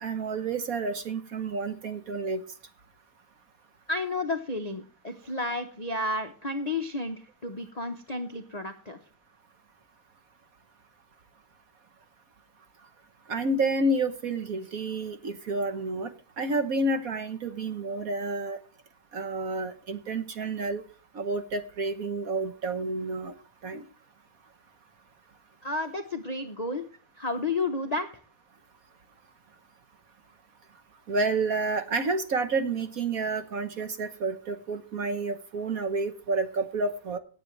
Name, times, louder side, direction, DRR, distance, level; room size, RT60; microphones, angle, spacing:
voice 1, 0.0-2.4 13.3-18.6 19.1-20.8 21.1-23.3 23.6-23.8 31.1-37.2, right 3 dB, 50° right, 9 dB, 1.2 m, -30 dB
voice 2, 3.9-9.0 25.6-26.8 27.2-28.1, left 2 dB, 60° left, 6 dB, 0.4 m, -31 dB
17.5 x 8.2 x 3.2 m, 0.40 s
omnidirectional pair, 2.4 m